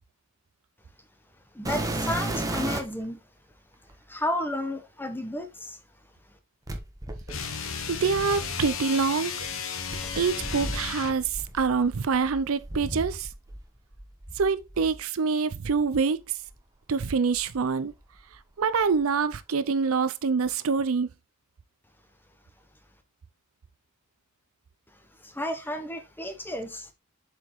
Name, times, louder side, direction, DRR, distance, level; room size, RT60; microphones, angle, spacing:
voice 1, 1.5-3.2 4.1-5.8 25.2-26.9, left 1 dB, 10° left, 1.0 m, -32 dB
sound 1, 1.6-3.0 3.9-4.0 6.7-8.7 9.9-13.6 13.9-15.0 15.7-15.9 16.5-16.6 17.3-18.4 18.6-19.1 20.5-20.6, right 1 dB, 15° right, 1.1 m, -35 dB
sound 2, 7.3-11.3, left 6 dB, 65° left, 1.0 m, -34 dB
voice 2, 7.9-9.3 10.2-13.3 14.4-16.2 16.9-17.9 18.6-21.1, right 5 dB, 75° right, 0.5 m, -25 dB
7.6 x 4.9 x 3.1 m
head